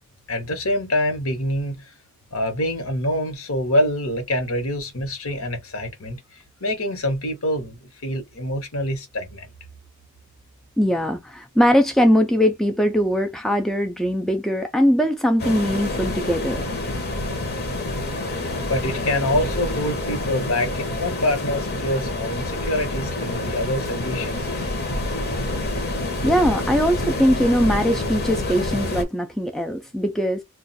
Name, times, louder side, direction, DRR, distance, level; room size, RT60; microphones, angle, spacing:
voice 1, 0.3-1.9 2.3-9.5 18.7-24.5, left 1 dB, 70° left, 1.1 m, -25 dB
voice 2, 10.8-16.7 26.2-30.4, equal, ahead, 0.3 m, -21 dB
sound 1, 15.4-29.0, left 2 dB, 45° left, 0.8 m, -27 dB
2.4 x 2.3 x 3.9 m
head